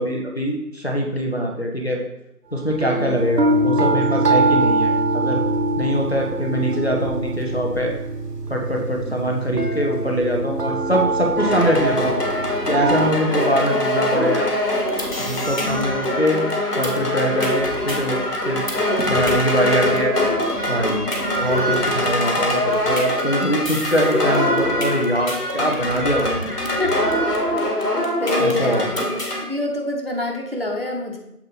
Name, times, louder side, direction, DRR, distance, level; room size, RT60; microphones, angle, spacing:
voice 1, 0.0-2.0 2.5-5.4 5.8-7.9 8.5-12.1 12.7-14.5 15.2-16.4 16.8-18.2 18.5-18.6 19.1-20.1 20.7-21.0 21.4-26.6 28.4-29.0, equal, 40° left, -1 dB, 1.0 m, -23 dB
sound 1, 2.7-13.1, right 2 dB, 80° right, 1.0 m, -23 dB
voice 2, 2.9-3.3 9.1-9.6 15.6-16.2 26.8-26.9 28.2-31.2, left 2 dB, 40° right, 1 dB, 0.8 m, -27 dB
sound 2, 11.4-29.4, left 1 dB, 75° left, 1.8 m, -23 dB
sound 3, 14.7-29.4, left 1 dB, 55° left, 1.5 m, -32 dB
7.3 x 4.1 x 4.3 m, 0.83 s
figure-of-eight pair, 170°, 47 cm